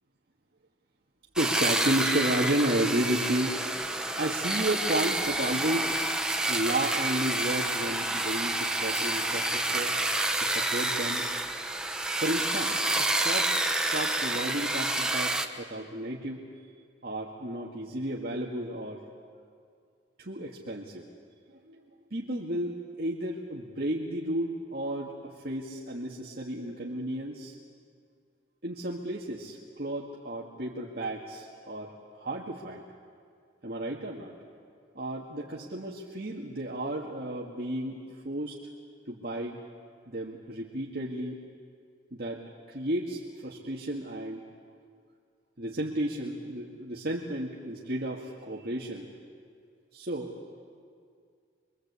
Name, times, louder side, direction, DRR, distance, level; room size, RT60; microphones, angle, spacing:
sound 1, 1.4-15.5, right 2 dB, 5° right, 1.1 m, -29 dB
voice 1, 1.4-3.6 4.2-10.0 10.4-11.2 12.2-16.4 17.0-19.0 20.2-21.0 21.6-21.8 22.1-27.6 28.6-32.8 33.6-34.4 35.0-38.6 39.1-39.6 40.1-41.4 42.1-44.4 45.6-49.1 49.9-50.4, right 1 dB, 50° right, -3 dB, 2.1 m, -33 dB
27.5 x 23.5 x 8.3 m, 2.2 s
head